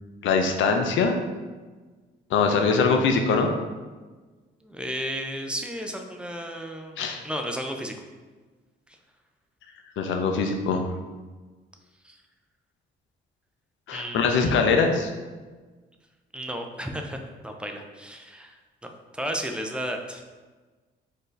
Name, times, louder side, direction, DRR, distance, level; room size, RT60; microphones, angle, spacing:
voice 1, 0.2-1.2 2.3-3.5 7.0-7.2 10.0-10.9 13.9-15.1, left 4 dB, 75° left, 5 dB, 0.5 m, -22 dB
voice 2, 4.6-7.0 7.2-7.9 12.0-12.2 13.9-14.5 16.3-20.2, equal, 5° right, 3 dB, 0.4 m, -34 dB
4.2 x 2.7 x 3.2 m, 1.3 s
cardioid pair, 90°, 20 cm